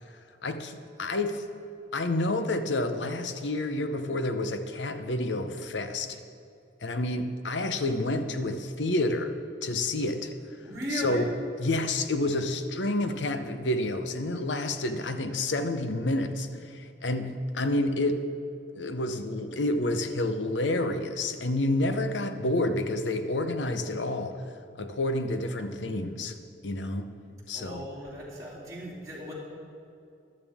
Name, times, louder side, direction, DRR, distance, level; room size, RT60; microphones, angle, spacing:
voice 1, 0.4-1.4 1.9-6.2 6.8-9.3 9.6-10.3 10.9-11.3 11.6-18.3 18.7-24.4 24.8-26.3 26.6-27.1 27.5-27.8, left 2 dB, 90° left, 8 dB, 0.8 m, -29 dB
voice 2, 10.6-11.2 27.5-29.3, equal, 20° right, -7 dB, 3.1 m, -36 dB
14.0 x 12.0 x 3.6 m, 2.6 s
head